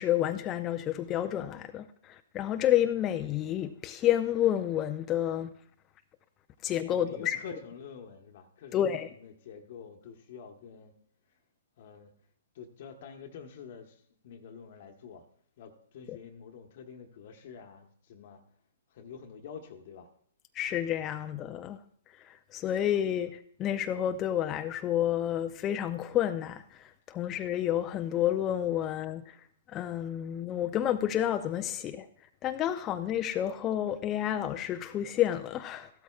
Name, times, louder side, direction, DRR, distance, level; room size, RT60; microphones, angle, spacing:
voice 1, 0.0-5.5 6.6-7.4 8.7-9.1 20.5-21.8 22.2-29.4 29.7-32.1 32.4-35.9, left 11 dB, 25° left, 0.5 m, -30 dB
voice 2, 6.8-10.9 11.8-12.1 12.5-15.2 15.6-18.4 18.9-20.1, left 6 dB, 55° left, 1.1 m, -47 dB
15.0 x 12.5 x 2.4 m
hypercardioid pair, 125°, 0 cm